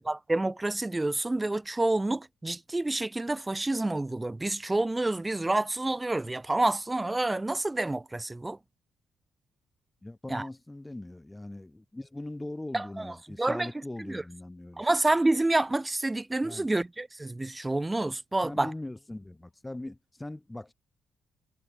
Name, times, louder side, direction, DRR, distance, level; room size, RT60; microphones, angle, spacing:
voice 1, 0.1-8.6 10.3-10.5 12.7-13.7 14.0-14.2 14.8-18.7, right 2 dB, 15° right, 4.4 m, -28 dB
voice 2, 10.0-14.9 16.4-16.7 18.4-20.7, left 1 dB, 10° left, 4.1 m, -40 dB
cardioid pair, 90°, 0 cm